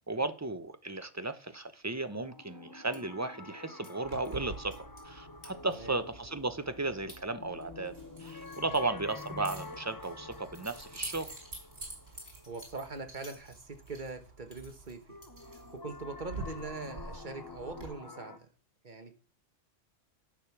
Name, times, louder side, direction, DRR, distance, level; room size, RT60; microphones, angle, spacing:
voice 1, 0.1-7.9 8.2-11.3, right 2 dB, 15° right, 0.7 m, -35 dB
sound 1, 2.1-13.0 15.1-18.4, left 3 dB, 20° left, 0.8 m, -48 dB
sound 2, 2.9-3.0 3.8-3.9 4.3-5.1 5.4-6.0 6.4-6.5 7.1-7.2 7.6-9.9 10.2-10.4 10.8-13.9 14.5-16.0 16.4-16.8 17.1-17.5, left 2 dB, 65° left, 2.9 m, -58 dB
Keys jangling, 4.0-17.9, right 2 dB, 80° right, 3.8 m, -48 dB
voice 2, 5.7-6.0 8.6-8.8 12.5-15.2 15.5-18.5 18.8-19.1, right 3 dB, 40° right, 1.4 m, -42 dB
10.0 x 6.6 x 5.9 m
omnidirectional pair, 1.2 m